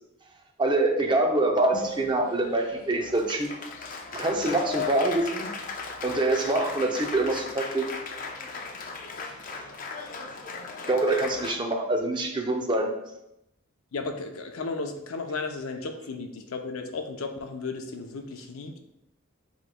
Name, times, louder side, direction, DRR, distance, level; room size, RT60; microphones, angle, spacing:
voice 1, 0.6-3.5 4.1-5.5 6.0-7.9 9.2-9.6 10.9-12.9, right 2 dB, 20° right, 3 dB, 0.5 m, -25 dB
Applause, 1.7-11.5, left 4 dB, 40° left, 0.4 m, -37 dB
voice 2, 13.9-18.8, left 3 dB, 85° left, 5 dB, 0.6 m, -34 dB
7.5 x 3.0 x 2.2 m, 0.84 s
head